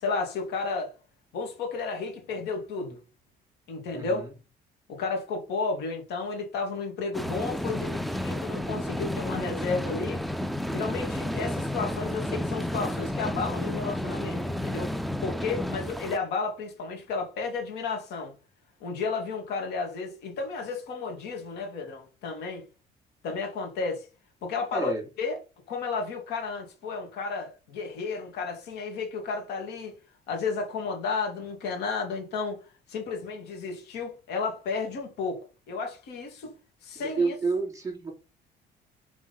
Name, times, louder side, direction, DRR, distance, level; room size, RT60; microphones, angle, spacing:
voice 1, 0.0-0.9 1.3-3.0 3.7-4.3 4.9-10.2 10.7-14.9 15.2-18.3 18.8-22.6 23.2-24.1 24.4-24.9 25.2-25.4 25.7-29.9 30.3-32.6 32.9-35.4 35.7-36.5 36.8-37.4, left 4 dB, 85° left, 2.9 m, -32 dB
voice 2, 3.9-4.3 24.7-25.0 36.9-38.1, right 3 dB, 20° right, 3.3 m, -29 dB
sound 1, 7.1-16.2, left 1 dB, ahead, 0.5 m, -31 dB
6.0 x 4.8 x 5.6 m
cardioid pair, 110°, 17 cm